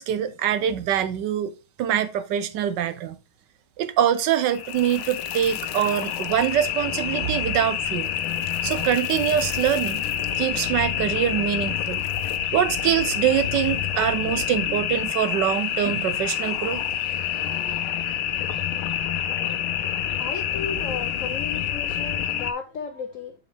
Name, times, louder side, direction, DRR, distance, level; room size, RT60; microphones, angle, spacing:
voice 1, 0.0-1.5 1.8-3.2 3.8-8.1 8.6-10.0 10.4-12.0 12.5-16.8, right 10 dB, 70° right, 1.1 m, -24 dB
sound 1, 4.5-22.5, left 10 dB, 85° left, 1.5 m, -27 dB
voice 2, 20.2-23.3, left 5 dB, 70° left, 0.7 m, -34 dB
7.0 x 5.3 x 3.5 m
omnidirectional pair, 2.3 m